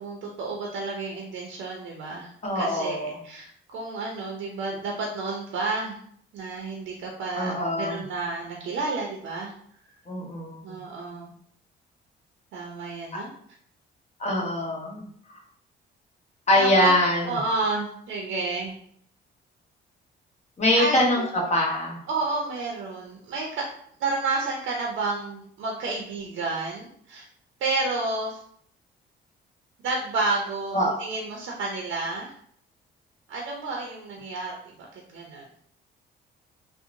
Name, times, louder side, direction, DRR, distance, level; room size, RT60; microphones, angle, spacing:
voice 1, 0.0-6.0 6.3-9.5 10.6-11.3 12.5-13.3 16.6-16.9 17.2-18.8 20.8-21.2 22.1-23.6 24.0-27.3 27.6-28.4 29.8-32.3 33.3-35.5, right 3 dB, 70° right, -1 dB, 0.5 m, -30 dB
voice 2, 2.4-3.2 7.3-8.0 10.1-10.8 14.2-15.0 16.5-17.4 20.6-22.0 30.7-30.9, left 1 dB, 35° left, -2 dB, 0.9 m, -23 dB
2.7 x 2.0 x 2.5 m, 0.64 s
cardioid pair, 90°, 20 cm